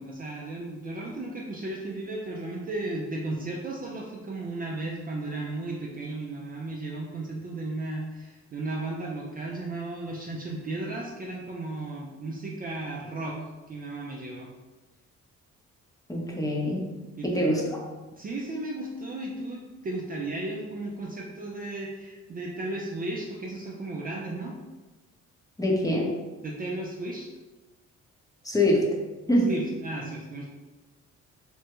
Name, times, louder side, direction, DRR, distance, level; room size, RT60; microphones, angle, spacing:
voice 1, 0.0-14.5 17.2-17.5 18.1-24.6 26.4-27.3 29.5-30.5, right 2 dB, 30° right, -2 dB, 0.4 m, -35 dB
voice 2, 16.1-16.8 17.2-17.8 25.6-26.1 28.4-28.9 29.3-29.5, left 1 dB, 10° left, -2 dB, 0.7 m, -24 dB
3.5 x 2.1 x 2.9 m, 1.2 s
cardioid pair, 90°, 30 cm